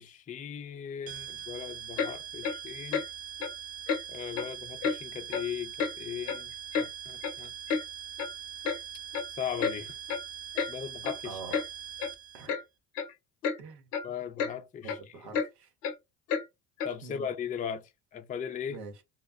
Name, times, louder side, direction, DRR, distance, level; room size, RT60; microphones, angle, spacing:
voice 1, 0.0-3.0 4.1-7.5 9.3-10.0 10.7-11.4 14.0-15.0 16.8-18.8, left 8 dB, 20° left, 0.4 m, -38 dB
sound 1, 1.1-12.5, right 10 dB, 30° right, 0.7 m, -42 dB
Clock, 2.0-2.1 2.4-2.6 2.9-3.1 3.4-3.5 3.9-4.0 4.3-4.5 4.8-5.0 5.3-5.5 5.8-5.9 6.3-6.9 7.2-7.3 7.7-7.8 8.2-8.3 8.6-8.8 9.1-9.3 9.6-9.8 10.1-10.2 10.5-10.7 11.0-11.2 11.5-11.7 12.0-12.1 12.5-12.6 12.9-13.1 13.4-13.6 13.9-14.1 14.4-14.5 14.8-15.0 15.3-15.5 15.8-15.9 16.3-16.4 16.8-16.9, left 6 dB, 90° left, 0.6 m, -30 dB
voice 2, 11.2-11.6 12.3-12.6 13.6-13.9 14.8-15.7 17.0-17.3 18.7-19.0, right 4 dB, 85° right, 0.9 m, -45 dB
2.1 x 2.0 x 3.4 m
hypercardioid pair, 60°, 46 cm